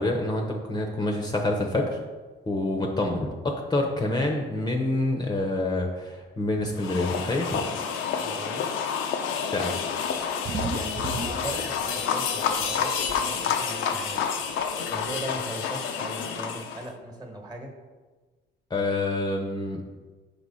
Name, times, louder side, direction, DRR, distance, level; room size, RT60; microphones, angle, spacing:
voice 1, 0.0-2.0 2.5-7.7 9.5-9.7 18.7-19.8, left 2 dB, 20° left, 1 dB, 0.7 m, -27 dB
sound 1, 6.8-16.9, left 7 dB, 85° left, 0.6 m, -29 dB
voice 2, 8.2-8.7 10.6-14.2 14.9-17.7, right 1 dB, 20° right, 2 dB, 1.3 m, -38 dB
sound 2, 10.2-12.2 12.5-13.2 14.2-14.3 14.6-14.7 15.0-15.1, right 3 dB, 40° right, 0.5 m, -33 dB
5.3 x 4.8 x 4.1 m, 1.3 s
cardioid pair, 90°, 20 cm